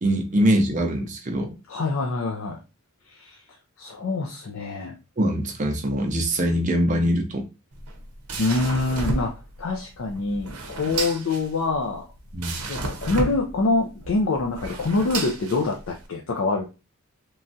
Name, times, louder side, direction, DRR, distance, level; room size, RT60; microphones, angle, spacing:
voice 1, 0.0-1.5 5.2-7.4 12.3-12.6, equal, 35° right, 4 dB, 0.5 m, -23 dB
voice 2, 1.7-2.6 3.1-3.4 3.8-4.9 8.4-12.1 12.7-16.7, left 3 dB, 65° left, 1 dB, 0.4 m, -25 dB
sound 1, 7.7-16.1, right 2 dB, 85° right, 0.7 m, -32 dB
3.1 x 2.2 x 2.6 m, 0.29 s
head